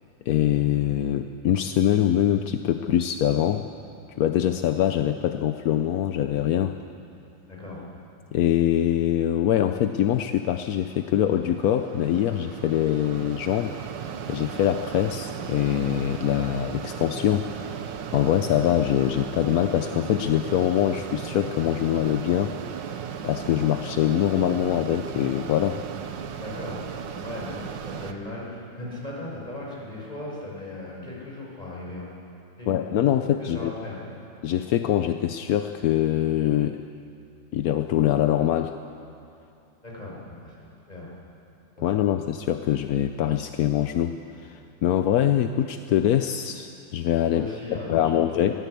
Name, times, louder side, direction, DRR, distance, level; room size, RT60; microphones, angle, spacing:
voice 1, 0.3-3.7 4.2-6.8 8.3-13.8 14.3-22.6 23.2-25.8 32.7-33.7 34.4-36.8 37.5-38.7 41.8-48.5, left 11 dB, 65° left, 8 dB, 0.9 m, -24 dB
voice 2, 7.4-7.9 26.3-26.8 27.2-32.1 32.6-32.9 33.4-34.0 39.8-40.6 40.9-41.1 41.8-41.9 47.3-48.6, left 2 dB, 20° left, -4 dB, 6.2 m, -37 dB
Mechanisms, 10.3-28.1, right 7 dB, 70° right, 1.6 m, -36 dB
22.0 x 16.5 x 8.3 m, 2.6 s
omnidirectional pair, 2.1 m